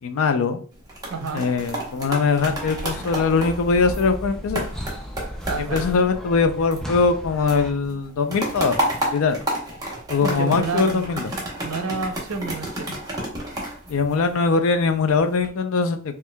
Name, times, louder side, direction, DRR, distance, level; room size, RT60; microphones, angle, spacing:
voice 1, 0.0-0.6 1.3-4.7 5.6-8.8 9.1-9.4 10.1-11.3 13.9-16.2, left 4 dB, 70° left, 8 dB, 0.4 m, -21 dB
sound 1, 0.7-7.2 7.5-14.7 15.2-15.5, right 1 dB, 20° right, 0.9 m, -31 dB
voice 2, 1.1-1.5 5.5-5.8 10.2-11.1 11.6-13.0, right 4 dB, 80° right, 6 dB, 0.6 m, -29 dB
sound 2, 2.4-7.7, equal, ahead, 0.4 m, -35 dB
4.3 x 2.4 x 2.2 m, 0.42 s
head